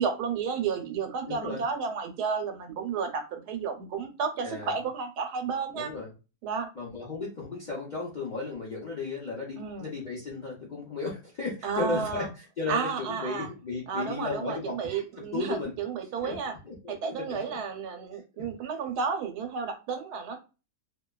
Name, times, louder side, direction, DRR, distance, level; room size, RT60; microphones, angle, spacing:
voice 1, 0.0-5.9 6.4-6.7 9.6-9.9 11.6-12.3 12.7-13.5 13.9-16.5 16.9-20.4, right 6 dB, 90° right, 6 dB, 1.2 m, -32 dB
voice 2, 1.3-1.6 4.4-4.8 5.7-6.1 6.7-15.8 16.2-16.3 16.6-17.6 18.4-18.5, left 3 dB, 55° left, -4 dB, 0.5 m, -35 dB
2.7 x 2.2 x 2.2 m, 0.31 s
omnidirectional pair, 1.6 m